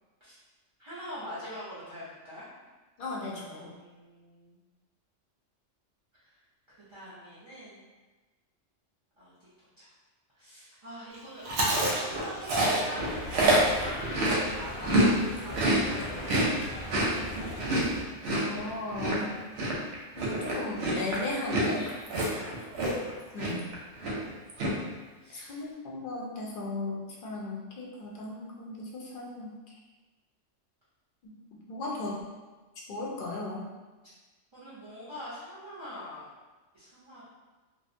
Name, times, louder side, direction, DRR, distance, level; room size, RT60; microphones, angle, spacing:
voice 1, 0.8-2.5 3.0-4.6 6.2-6.4 6.7-7.8 9.2-9.9 10.3-13.6 13.9-16.3 22.1-22.8 23.8-24.0 25.2-25.7 34.5-36.3 36.7-37.2, equal, 40° right, -11 dB, 0.4 m, -44 dB
voice 2, 3.0-3.7 18.3-19.3 20.2-21.9 23.3-23.7 25.3-29.5 31.2-31.3 31.7-32.2 32.9-33.6, left 2 dB, 60° left, -3 dB, 0.6 m, -36 dB
Chewing mastication, 11.5-15.1 15.4-23.1 23.4-23.7 24.0-24.7, right 1 dB, 65° right, 0.8 m, -27 dB
sound 1, 13.0-18.0, left 1 dB, 85° left, 0.9 m, -40 dB
2.5 x 2.0 x 2.5 m, 1.2 s
omnidirectional pair, 1.3 m